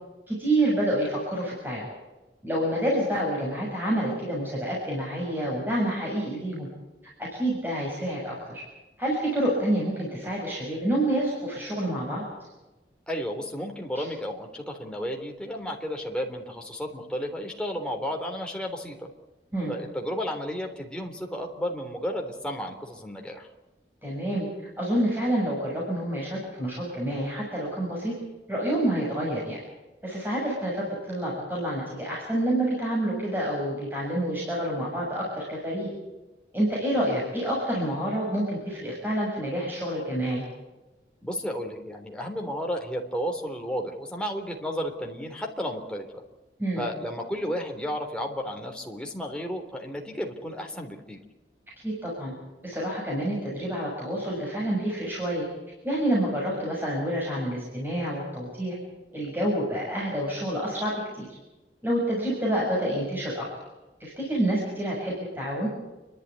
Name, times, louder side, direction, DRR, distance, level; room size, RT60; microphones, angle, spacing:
voice 1, 0.3-1.9 2.4-6.7 7.2-8.6 9.0-12.2 14.0-14.1 19.5-19.7 24.0-24.5 24.8-28.1 28.5-29.6 30.0-35.9 36.5-40.4 46.6-46.9 51.8-52.3 52.6-55.5 55.8-58.8 59.1-61.3 61.8-63.5 64.0-65.7, right 1 dB, 10° right, -4 dB, 7.0 m, -28 dB
voice 2, 13.1-19.1 19.7-23.5 41.2-46.2 46.8-51.2, equal, 5° left, 0 dB, 3.4 m, -33 dB
29.5 x 12.0 x 9.6 m, 1.1 s
head